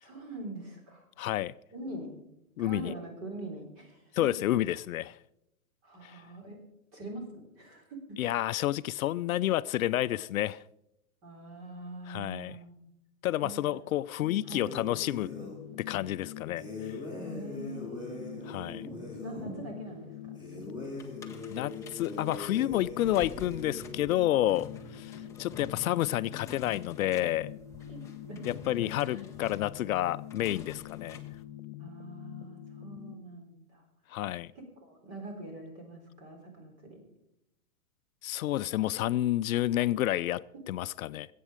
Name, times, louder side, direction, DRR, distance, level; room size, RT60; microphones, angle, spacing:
voice 1, 0.0-1.0 1.7-2.1 2.6-4.2 5.8-6.6 6.9-8.2 11.2-12.9 13.4-13.8 14.4-14.9 17.2-18.8 19.2-20.9 27.9-29.2 31.8-33.8 34.6-37.0, right 1 dB, 30° right, 3.9 m, -44 dB
voice 2, 1.2-1.5 2.6-2.9 4.1-5.2 6.0-6.2 8.2-10.6 12.1-12.6 13.2-15.3 15.8-17.0 18.5-18.8 21.5-27.5 28.4-31.2 34.1-34.5 38.2-41.3, left 14 dB, 70° left, 0.5 m, -30 dB
sound 1, 14.2-33.2, left 12 dB, 40° left, 1.6 m, -45 dB
sound 2, 14.6-15.6 16.6-19.5 20.4-24.1, left 2 dB, 10° right, 3.8 m, -42 dB
sound 3, 21.0-31.4, left 4 dB, 5° left, 0.6 m, -49 dB
21.0 x 8.5 x 5.0 m
hypercardioid pair, 155°, 43 cm